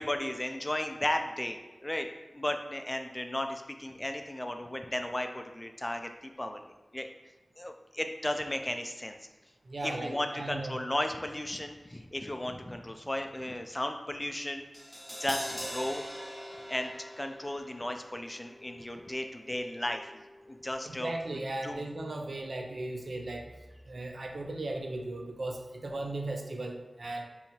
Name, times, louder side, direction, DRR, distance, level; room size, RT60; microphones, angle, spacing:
voice 1, 0.0-2.1 2.3-6.6 6.9-7.1 7.6-9.2 9.8-14.6 15.2-16.1 16.7-20.1 20.5-21.1 21.6-21.8, left 1 dB, 20° left, 6 dB, 0.3 m, -35 dB
voice 2, 9.6-10.8 20.8-23.5 23.9-27.2, right 2 dB, 70° right, 3 dB, 0.5 m, -37 dB
Crash cymbal, 14.7-20.9 21.2-21.3, equal, ahead, 0.9 m, -44 dB
4.4 x 2.8 x 2.8 m, 1.2 s
wide cardioid pair, 85°, 0 cm